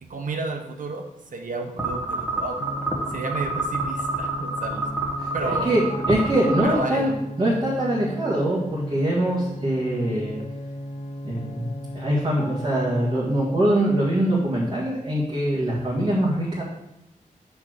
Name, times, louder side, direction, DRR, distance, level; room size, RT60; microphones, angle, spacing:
voice 1, 0.0-1.0 1.3-2.7 3.1-4.8 5.3-6.1 6.6-7.1, right 3 dB, 75° right, 4 dB, 0.9 m, -32 dB
sound 1, 1.8-6.8, right 2 dB, 10° right, 1.4 m, -28 dB
sound 2, 2.6-13.3, equal, 60° left, 0.7 m, -35 dB
voice 2, 5.2-7.1 7.4-10.4 11.2-16.6, right 1 dB, 40° right, -8 dB, 1.7 m, -23 dB
5.4 x 4.6 x 6.3 m, 0.86 s
wide cardioid pair, 105°, 14 cm